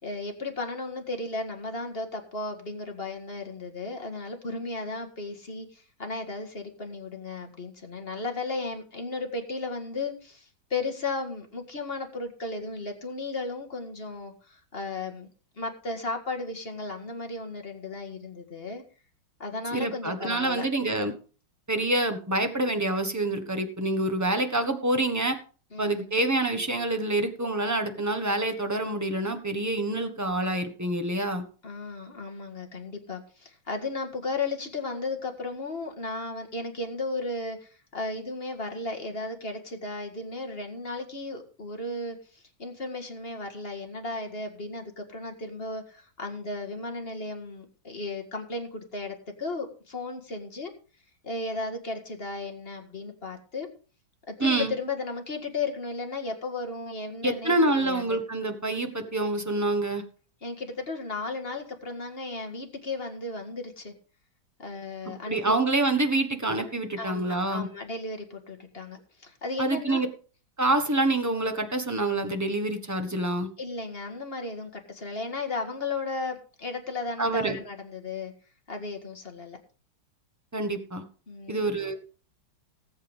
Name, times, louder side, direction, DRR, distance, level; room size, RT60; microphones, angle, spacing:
voice 1, 0.0-15.3 15.6-18.8 19.4-20.6 25.7-26.1 31.6-50.7 51.2-53.7 54.3-58.2 60.4-63.9 64.6-65.4 67.0-70.0 73.6-78.3 78.7-79.6 81.3-81.7, left 3 dB, 30° left, 3 dB, 1.9 m, -35 dB
voice 2, 19.7-21.1 21.7-25.4 25.8-31.4 54.4-54.7 57.2-60.0 65.3-67.7 69.6-70.1 70.6-73.5 77.2-77.6 80.5-81.0 81.5-81.9, right 2 dB, 10° right, 7 dB, 1.0 m, -26 dB
19.0 x 8.1 x 3.6 m, 0.39 s
omnidirectional pair, 2.3 m